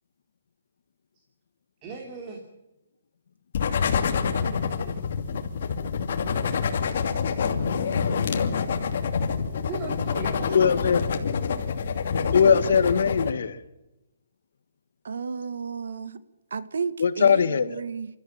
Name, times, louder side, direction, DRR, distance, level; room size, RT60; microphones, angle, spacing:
voice 1, 1.8-2.4 3.8-5.0 9.7-11.2, right 4 dB, 20° right, 1 dB, 2.9 m, -39 dB
sound 1, 3.5-13.3, left 6 dB, 50° left, 2.7 m, -27 dB
voice 2, 10.5-11.0 12.3-13.6 17.0-17.8, left 6 dB, 70° left, 11 dB, 1.9 m, -20 dB
voice 3, 15.0-16.2 16.5-18.1, right 5 dB, 80° right, 13 dB, 1.7 m, -32 dB
28.5 x 14.0 x 8.9 m, 0.93 s
hypercardioid pair, 170°, 0 cm